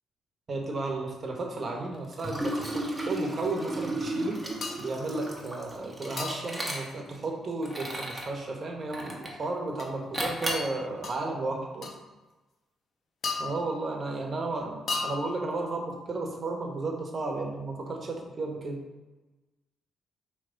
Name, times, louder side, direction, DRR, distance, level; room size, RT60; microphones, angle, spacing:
voice 1, 0.5-4.4 4.8-12.0 13.4-18.8, right 2 dB, 45° right, 1 dB, 1.1 m, -33 dB
Liquid, 2.1-7.2 7.6-8.3 8.9-9.4 10.1-10.7, right 1 dB, 15° right, 1.0 m, -34 dB
sound 1, 4.6-4.9 6.2-6.6 9.8-9.9 11.0-11.2 11.8-12.0 13.2-13.9 14.9-15.5, left 4 dB, 60° left, 0.7 m, -34 dB
5.1 x 3.0 x 3.4 m, 1.2 s
cardioid pair, 80°, 0 cm